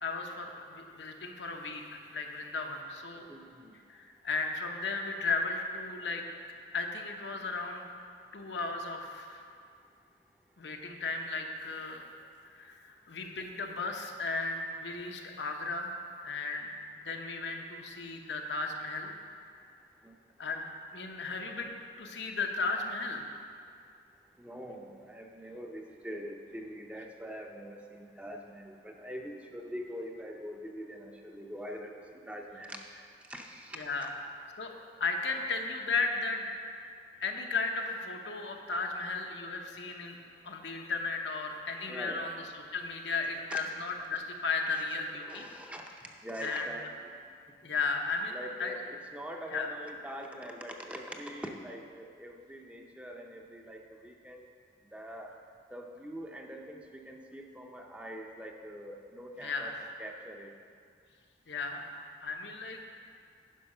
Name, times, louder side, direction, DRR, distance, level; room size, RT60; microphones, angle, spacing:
voice 1, 0.0-3.2 3.9-6.2 6.7-7.9 8.3-9.4 10.6-12.0 12.4-16.7 17.0-19.1 20.4-20.6 20.9-23.3 33.7-34.1 34.6-34.7 35.0-36.5 37.2-40.2 40.4-45.5 46.4-46.7 47.6-48.8 49.5-49.7 59.4-59.8 61.5-61.9 62.2-62.8, left 3 dB, 85° left, 2 dB, 0.9 m, -35 dB
voice 2, 3.3-3.7 20.0-20.2 24.4-33.8 41.9-42.3 43.5-43.6 45.2-46.9 48.3-54.5 54.9-55.4 55.7-59.7 60.0-60.5, equal, 5° right, 2 dB, 0.6 m, -43 dB
10.0 x 5.8 x 5.4 m, 2.2 s
head